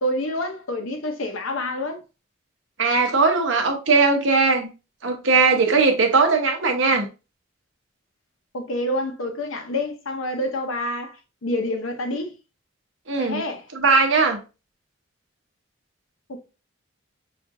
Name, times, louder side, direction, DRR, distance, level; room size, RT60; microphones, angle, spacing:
voice 1, 0.0-2.0 8.5-11.2 11.4-12.3 13.2-13.7 16.3-16.4, left 1 dB, 85° left, 0.8 m, -27 dB
voice 2, 2.8-4.7 5.0-7.1 13.1-13.4 13.7-14.4, right 4 dB, 70° right, 1.0 m, -19 dB
5.7 x 2.5 x 2.7 m
head